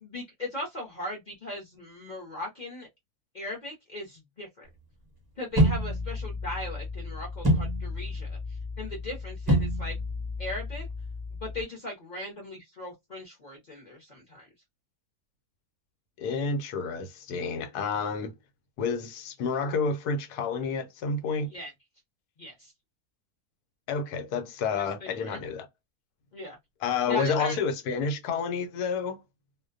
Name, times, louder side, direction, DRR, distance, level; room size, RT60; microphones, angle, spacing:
voice 1, 0.0-2.9 3.3-4.7 5.4-9.9 10.4-10.9 11.4-14.5 21.5-21.7 22.4-22.7 24.7-25.4 26.3-26.6 27.1-27.6, left 1 dB, 40° left, 0.7 m, -38 dB
sound 1, 5.6-11.6, equal, 35° right, 0.4 m, -29 dB
voice 2, 16.2-18.3 18.8-21.5 23.9-25.7 26.8-29.2, left 5 dB, 90° left, 1.2 m, -29 dB
2.5 x 2.1 x 2.4 m
omnidirectional pair, 1.6 m